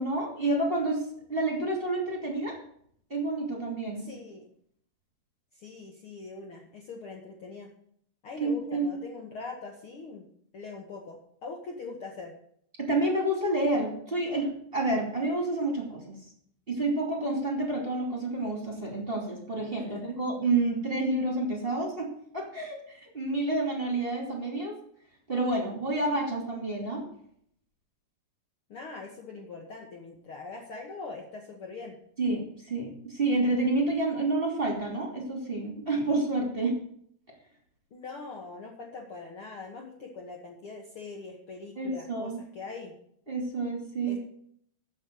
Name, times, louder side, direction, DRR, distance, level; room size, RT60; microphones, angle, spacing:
voice 1, 0.0-2.6 3.1-4.1 8.4-9.0 12.8-16.2 16.7-22.1 22.3-24.8 25.3-27.1 32.2-36.7 41.8-42.4 43.3-44.2, right 2 dB, 15° right, 0 dB, 2.2 m, -29 dB
voice 2, 3.9-4.5 5.5-7.7 8.2-10.3 10.5-12.3 19.8-20.1 28.7-32.0 37.9-42.9 44.1-44.2, left 4 dB, 85° left, 0 dB, 1.1 m, -42 dB
14.5 x 5.4 x 7.6 m, 0.66 s
omnidirectional pair, 4.7 m